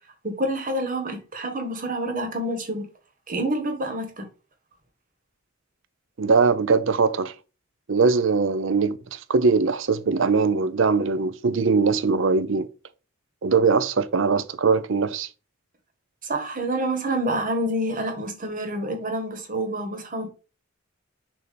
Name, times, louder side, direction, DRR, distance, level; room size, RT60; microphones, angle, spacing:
voice 1, 0.2-2.9 3.3-4.3 16.2-20.3, right 1 dB, 40° right, 1.4 m, -27 dB
voice 2, 6.2-7.3 7.9-12.7 13.4-15.3, right 4 dB, 65° right, 0.6 m, -21 dB
6.7 x 2.8 x 5.2 m
head